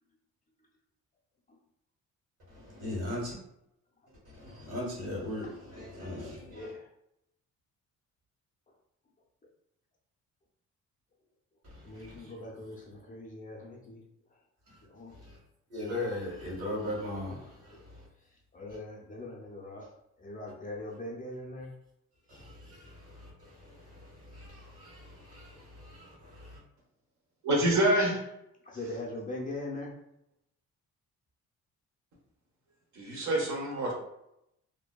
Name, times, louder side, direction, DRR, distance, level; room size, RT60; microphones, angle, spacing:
voice 1, 2.5-3.4 4.3-6.7 11.6-12.3 14.7-14.8 15.1-15.4 15.7-18.1 22.3-26.6, left 1 dB, 55° right, -4 dB, 1.4 m, -39 dB
voice 2, 11.9-14.0 14.9-15.1 18.5-19.8 20.2-21.7 28.7-29.9, left 2 dB, 25° left, -1 dB, 0.5 m, -41 dB
voice 3, 27.4-28.3 28.7-29.0 32.9-33.9, right 1 dB, 70° right, -2 dB, 0.8 m, -27 dB
2.6 x 2.1 x 2.2 m, 0.81 s
cardioid pair, 90°, 30 cm